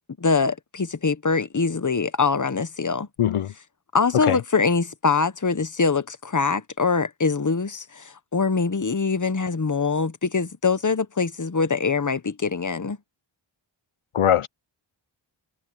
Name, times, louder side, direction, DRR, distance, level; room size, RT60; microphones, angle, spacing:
voice 1, 0.2-3.1 3.9-13.0, left 4 dB, 35° left, 1.1 m, -23 dB
voice 2, 3.2-3.5 4.3-4.4 14.1-14.5, left 10 dB, 85° left, 0.7 m, -20 dB
wide cardioid pair, 55°, 49 cm